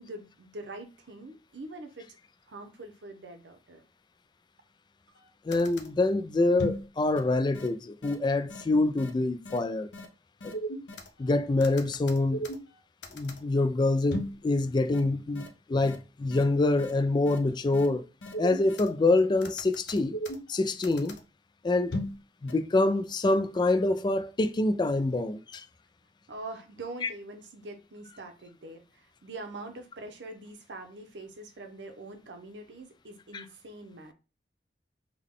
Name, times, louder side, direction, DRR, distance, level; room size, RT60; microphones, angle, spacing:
voice 1, 0.0-2.1 2.5-3.8 26.3-34.1, right 2 dB, 85° right, 0.8 m, -44 dB
sound 1, 5.2-5.3 5.5-5.9 6.6-6.9 7.2-7.3 7.5-7.7 8.0-8.2 8.5-8.6 9.0-9.1 9.5-9.6 9.9-10.1 10.4-11.1 11.6-12.8 13.0-13.4 14.1-14.4 14.9-15.0 15.4-15.5 15.8-16.0 16.3-16.4 16.8-16.9 17.3-17.4 17.7-17.9 18.2-18.9 19.4-20.5 20.8-21.2 21.9-22.2 22.5-22.6, equal, 85° left, 0.7 m, -36 dB
voice 2, 5.5-9.9 10.4-10.5 11.2-12.5 13.1-18.1 18.4-20.2 20.5-21.2 21.6-22.0 22.4-25.6 27.0-27.1 33.3-33.4, left 2 dB, 25° left, 0.3 m, -26 dB
3.6 x 2.2 x 3.6 m
head